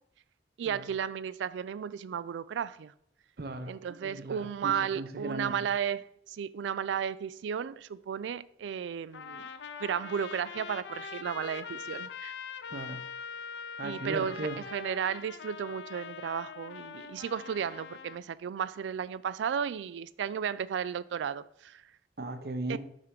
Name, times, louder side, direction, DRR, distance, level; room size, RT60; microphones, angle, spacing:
voice 1, 0.6-2.9 3.7-9.5 9.8-12.3 13.8-21.8 22.7-22.8, right 7 dB, 90° right, 0.3 m, -34 dB
voice 2, 3.4-3.8 4.0-5.5 12.7-13.0 13.8-14.6 22.2-22.8, right 2 dB, 60° right, 0.7 m, -37 dB
Trumpet, 9.1-18.2, left 6 dB, 75° left, 0.5 m, -43 dB
6.3 x 3.7 x 5.9 m
head